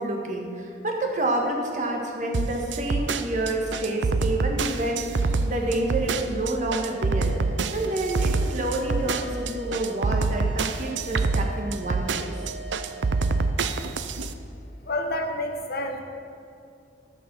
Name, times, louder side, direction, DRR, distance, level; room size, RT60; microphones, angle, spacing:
voice 1, 0.0-7.3 7.7-12.3, right 1 dB, 45° right, 0 dB, 1.6 m, -28 dB
sound 1, 2.3-14.3, right 4 dB, 80° right, 0.6 m, -25 dB
sound 2, 6.8-13.4, right 4 dB, 5° left, 1.3 m, -42 dB
voice 2, 14.8-16.0, left 1 dB, 55° left, 4 dB, 1.2 m, -29 dB
14.5 x 5.4 x 7.4 m, 2.4 s
head